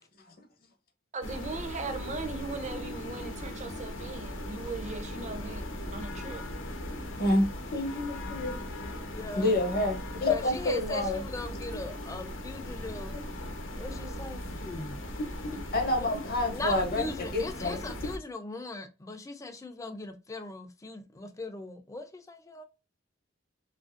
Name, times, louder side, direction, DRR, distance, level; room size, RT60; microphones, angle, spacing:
voice 1, 1.1-5.6 5.9-6.4, right 3 dB, 40° right, 0.5 m, -38 dB
sound 1, 1.2-18.2, left 1 dB, 85° left, 0.7 m, -39 dB
voice 2, 7.2-8.6 9.3-11.2 11.7-11.8 13.1-13.2 15.4-17.8, left 2 dB, 50° left, 0.8 m, -29 dB
voice 3, 9.1-9.5 10.3-13.2 13.7-15.0 15.5-15.6 16.5-22.6, left 2 dB, 15° left, 0.4 m, -39 dB
2.8 x 2.5 x 2.4 m
head